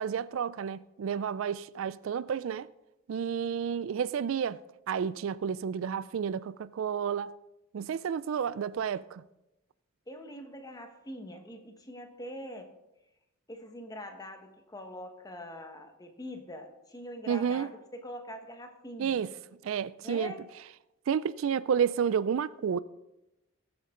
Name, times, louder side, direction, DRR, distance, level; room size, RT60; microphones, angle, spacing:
voice 1, 0.0-2.7 3.1-4.6 4.9-7.3 7.7-9.2 17.3-17.7 19.0-19.3 19.6-20.3 21.1-22.8, right 7 dB, 65° right, 0.3 m, -30 dB
voice 2, 10.1-12.7 13.5-19.2 20.0-20.4, left 1 dB, 20° left, 1.3 m, -43 dB
19.5 x 8.0 x 3.8 m
head